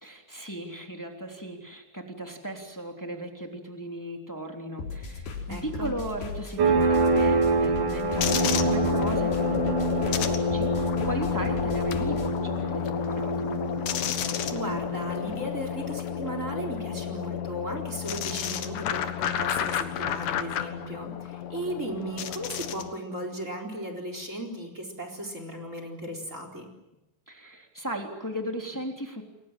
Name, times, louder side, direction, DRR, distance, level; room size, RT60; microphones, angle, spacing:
voice 1, 0.0-13.6 27.3-29.2, right 1 dB, 5° left, 2 dB, 2.6 m, -36 dB
sound 1, 4.8-12.3, left 4 dB, 90° left, 6.3 m, -37 dB
voice 2, 5.5-5.9 14.5-26.7, right 1 dB, 20° right, 5 dB, 4.2 m, -36 dB
sound 2, 6.6-16.9, right 3 dB, 55° right, 4.4 m, -28 dB
sound 3, 8.2-22.9, left 10 dB, 60° left, 2.7 m, -30 dB
29.5 x 23.0 x 7.6 m, 0.97 s
omnidirectional pair, 4.7 m